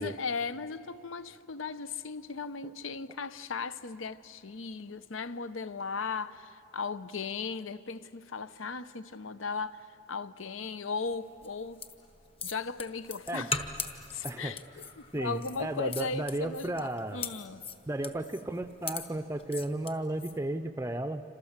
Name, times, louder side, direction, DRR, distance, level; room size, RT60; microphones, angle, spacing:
voice 1, 0.0-11.8 12.4-13.6 14.1-14.6 15.0-17.6, left 4 dB, 75° left, 0.8 m, -37 dB
sound 1, 11.4-20.4, left 5 dB, 25° left, 1.1 m, -40 dB
voice 2, 14.2-14.6 15.1-17.2 17.9-21.2, right 1 dB, 15° right, 0.5 m, -34 dB
28.0 x 26.5 x 7.3 m
head